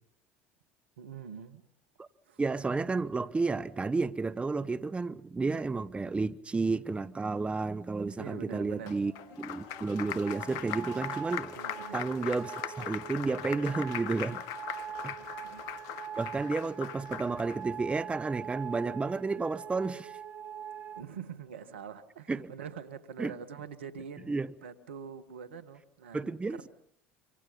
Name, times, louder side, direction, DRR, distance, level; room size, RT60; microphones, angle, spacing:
voice 1, 1.0-1.6 2.2-2.4 8.2-9.0 11.5-12.0 15.1-15.6 16.0-16.2 20.9-26.6, right 7 dB, 85° right, 1.6 m, -45 dB
voice 2, 2.4-9.1 9.4-11.6 11.9-14.4 15.0-15.1 16.2-20.1 22.3-22.5 23.2-23.3 24.3-24.5 26.1-26.7, right 3 dB, 20° right, 0.9 m, -31 dB
sound 1, 8.5-21.0, right 8 dB, 35° right, 1.6 m, -44 dB
Applause, 8.9-17.6, left 11 dB, 65° left, 1.3 m, -40 dB
27.0 x 25.5 x 5.3 m
hypercardioid pair, 70°, 6 cm